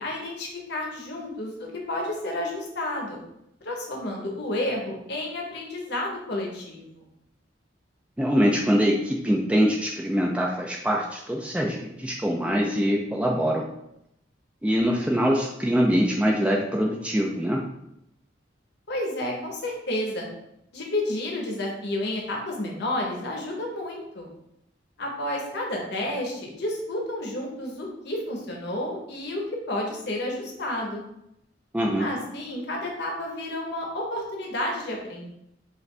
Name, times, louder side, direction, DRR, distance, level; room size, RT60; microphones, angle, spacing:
voice 1, 0.0-3.2 3.6-7.1 18.9-20.3 20.7-24.3 25.0-29.4 29.7-31.0 32.0-35.3, left 1 dB, 65° left, 0 dB, 1.0 m, -31 dB
voice 2, 8.2-13.7 14.6-17.6 31.7-32.1, equal, 5° right, 0 dB, 0.3 m, -23 dB
4.9 x 2.5 x 3.3 m, 0.81 s
head